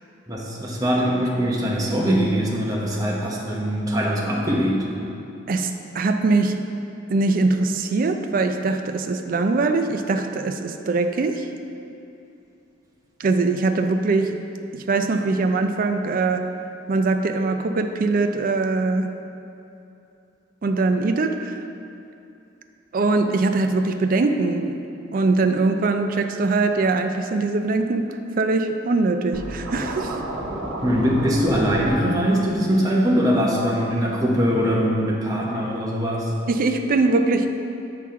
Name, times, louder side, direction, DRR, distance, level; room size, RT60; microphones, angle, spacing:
voice 1, 0.3-4.9 30.8-36.3, equal, 20° right, -3 dB, 0.9 m, -22 dB
voice 2, 5.5-6.6 7.1-11.5 13.2-14.4 14.7-16.5 16.9-19.1 20.6-21.6 22.9-24.8 25.1-30.2 36.5-37.5, right 3 dB, 45° right, 7 dB, 0.4 m, -22 dB
Scratching (performance technique), 29.3-31.9, right 1 dB, 80° right, 0.9 m, -31 dB
7.0 x 5.7 x 3.6 m, 2.8 s
head